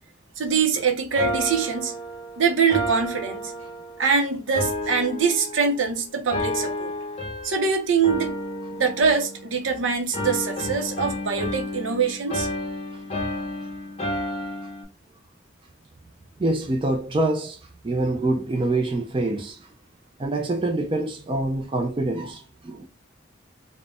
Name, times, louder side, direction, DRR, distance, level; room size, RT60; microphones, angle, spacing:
voice 1, 0.4-1.9 2.4-3.5 4.0-6.9 7.4-8.4 8.7-12.5, right 5 dB, 75° right, 0.6 m, -23 dB
sound 1, 1.2-4.1 4.5-5.9 6.3-7.7 8.0-9.8 10.1-14.8, left 1 dB, 30° left, 0.6 m, -31 dB
voice 2, 16.4-19.7 20.2-22.9, right 2 dB, 25° right, 0.4 m, -26 dB
2.5 x 2.1 x 3.3 m
head